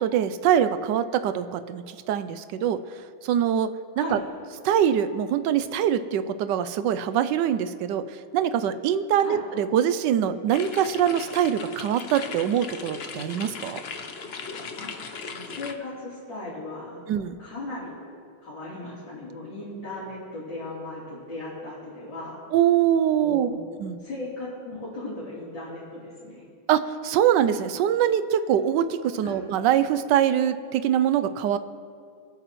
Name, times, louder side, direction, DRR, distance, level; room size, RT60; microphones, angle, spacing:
voice 1, 0.0-2.8 3.2-3.7 4.0-4.2 4.6-8.0 8.3-13.8 17.1-17.3 22.5-23.5 23.8-24.0 26.7-31.6, right 9 dB, 75° right, 12 dB, 1.1 m, -23 dB
sound 1, 10.5-15.7, left 5 dB, 85° left, 0.5 m, -38 dB
voice 2, 15.3-17.0 17.4-17.9 18.4-22.4 23.2-23.7 24.0-26.4 29.2-29.4, left 2 dB, 60° left, -11 dB, 4.4 m, -37 dB
25.5 x 8.9 x 3.1 m, 2.2 s
omnidirectional pair, 2.2 m